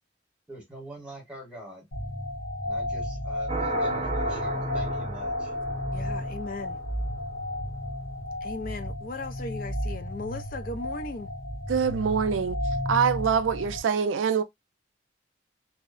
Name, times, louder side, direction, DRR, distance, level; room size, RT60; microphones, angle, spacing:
voice 1, 0.5-1.9 2.6-5.5, right 1 dB, 5° right, 0.9 m, -44 dB
sound 1, 1.9-13.8, left 1 dB, 85° left, 1.0 m, -32 dB
sound 2, 3.5-6.9, right 3 dB, 30° right, 0.6 m, -35 dB
voice 2, 5.9-6.8 8.4-11.3, left 3 dB, 45° left, 0.4 m, -37 dB
voice 3, 11.7-12.6 12.9-14.4, right 6 dB, 85° right, 0.4 m, -24 dB
2.7 x 2.0 x 2.4 m
head